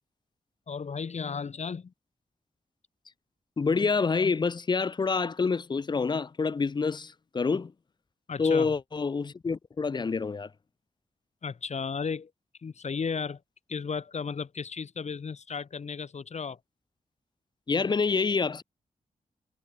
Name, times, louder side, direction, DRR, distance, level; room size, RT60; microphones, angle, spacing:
voice 1, 0.7-1.9 8.3-8.7 11.4-12.3 12.6-13.4 13.7-16.6, left 5 dB, 55° left, 3.0 m, -34 dB
voice 2, 3.6-7.7 8.4-10.5 17.7-18.6, left 4 dB, 30° left, 0.6 m, -27 dB
wide cardioid pair, 130°, 14 cm